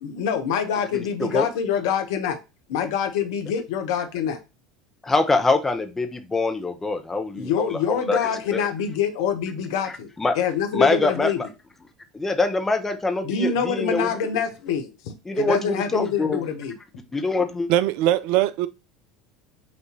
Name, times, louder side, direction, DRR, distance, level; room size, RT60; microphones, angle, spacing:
voice 1, 0.0-2.4 2.7-4.4 7.3-11.5 13.2-16.8, left 7 dB, 65° left, 0.8 m, -26 dB
voice 2, 5.0-8.2 8.5-8.6 10.2-10.3 10.7-11.3 12.1-14.1 15.3-16.4 17.1-17.7, left 3 dB, 15° left, 0.8 m, -24 dB
voice 3, 17.7-18.7, right 13 dB, 60° right, 0.3 m, -21 dB
5.9 x 2.7 x 2.8 m
figure-of-eight pair, 70°, 2 cm